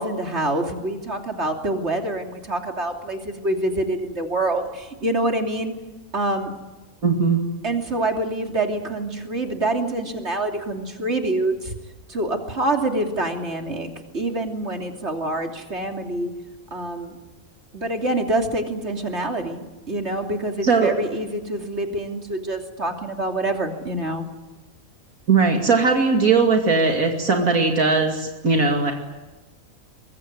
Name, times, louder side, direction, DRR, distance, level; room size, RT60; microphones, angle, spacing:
voice 1, 0.0-5.7 6.1-6.5 7.6-11.8 12.1-16.3 16.7-17.2 17.7-24.3, right 2 dB, 50° right, 3 dB, 3.4 m, -26 dB
voice 2, 7.0-7.4 20.6-20.9 25.3-28.9, right 4 dB, 85° right, 2 dB, 2.9 m, -19 dB
23.5 x 23.0 x 9.5 m, 1.1 s
omnidirectional pair, 1.4 m